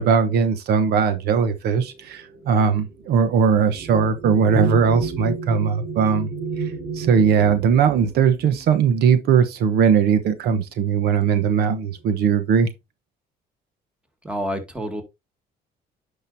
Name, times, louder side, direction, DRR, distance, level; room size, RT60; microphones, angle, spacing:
voice 1, 0.0-6.3 6.9-12.7, right 6 dB, 70° right, 1.1 m, -19 dB
sound 1, 1.9-10.0 10.9-11.1 11.4-12.0, right 5 dB, 40° right, 4.3 m, -33 dB
voice 2, 14.2-15.0, equal, 5° right, 2.0 m, -28 dB
10.0 x 5.2 x 2.7 m
cardioid pair, 110°, 17 cm